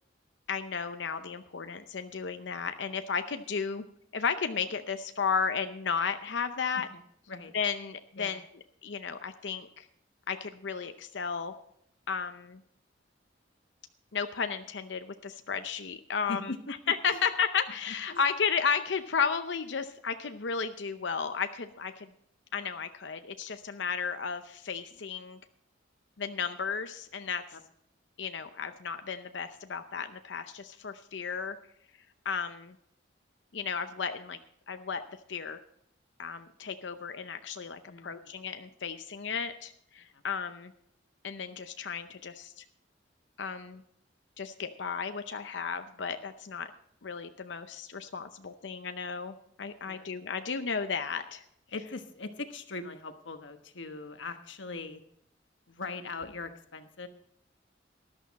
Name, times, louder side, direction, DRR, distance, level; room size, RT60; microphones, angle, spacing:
voice 1, 0.5-3.8 4.1-6.9 7.5-8.4 8.8-9.9 10.3-11.5 12.1-12.6 14.1-16.5 16.9-22.1 22.5-25.4 26.2-27.4 28.2-31.6 32.2-32.7 33.5-34.4 34.7-35.0 35.3-35.6 36.2-40.7 41.2-42.6 43.4-43.8 44.4-46.7 47.0-51.4, left 6 dB, 70° left, 8 dB, 0.7 m, -33 dB
voice 2, 16.3-17.2 17.9-18.2 27.5-27.6 37.9-38.3 40.1-40.2 45.9-46.1 49.8-50.1 51.7-55.0 55.7-57.1, left 3 dB, 90° left, 8 dB, 1.2 m, -41 dB
13.5 x 12.0 x 4.1 m, 0.70 s
head